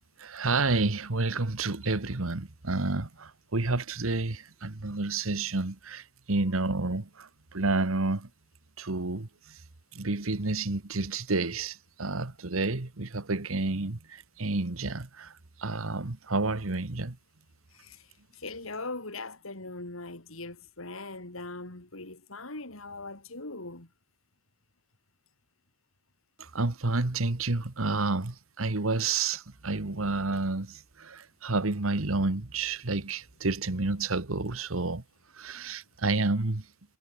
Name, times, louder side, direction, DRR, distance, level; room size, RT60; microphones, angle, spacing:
voice 1, 0.2-8.3 8.8-9.6 9.9-15.3 15.6-17.2 26.4-35.0 35.3-36.7, right 3 dB, 80° right, 1.5 m, -30 dB
voice 2, 17.7-18.1 18.3-23.9 28.9-29.0 29.8-30.0, left 2 dB, 80° left, 3.9 m, -41 dB
head